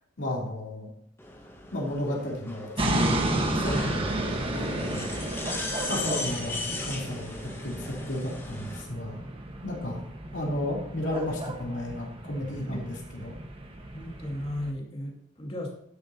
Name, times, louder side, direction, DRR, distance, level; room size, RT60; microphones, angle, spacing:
voice 1, 0.2-0.9 1.7-4.2 4.6-5.1 5.9-9.2 9.6-10.0 10.3-13.3, left 1 dB, 60° left, -3 dB, 3.3 m, -33 dB
sound 1, 1.2-8.8, left 2 dB, 10° left, 1.5 m, -38 dB
sound 2, 2.8-14.7, right 1 dB, 25° right, 1.3 m, -32 dB
voice 2, 13.9-15.8, left 1 dB, 25° left, -1 dB, 2.3 m, -35 dB
11.5 x 10.0 x 2.9 m, 0.70 s
head